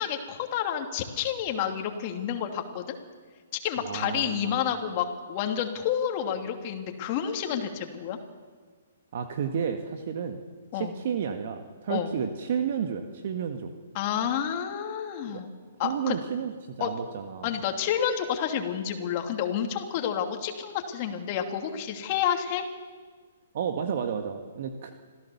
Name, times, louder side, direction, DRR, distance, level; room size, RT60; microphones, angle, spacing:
voice 1, 0.0-3.0 3.6-8.2 10.7-10.9 11.9-12.1 13.9-15.5 15.8-16.2 16.8-16.9 17.4-22.7, left 9 dB, 35° left, 4 dB, 2.8 m, -29 dB
voice 2, 3.8-4.5 9.1-10.4 10.7-13.7 15.3-15.4 15.8-17.5 23.5-24.9, right 7 dB, 50° right, 6 dB, 1.7 m, -31 dB
26.5 x 16.5 x 7.2 m, 1.5 s
figure-of-eight pair, 125°, 0 cm